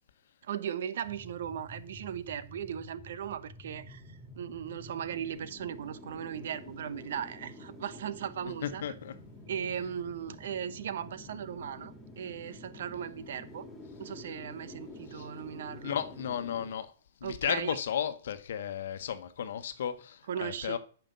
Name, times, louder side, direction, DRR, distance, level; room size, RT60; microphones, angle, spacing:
voice 1, 0.4-4.0 4.4-8.8 9.5-13.6 14.0-16.0 17.2-17.8 20.3-20.8, right 8 dB, 65° right, 0.9 m, -37 dB
sound 1, 1.0-16.7, left 1 dB, 5° left, 2.8 m, -49 dB
voice 2, 8.4-9.1 15.1-15.3 15.8-16.9 17.2-20.8, left 8 dB, 70° left, 1.1 m, -34 dB
9.0 x 5.8 x 6.8 m
hypercardioid pair, 125°, 0 cm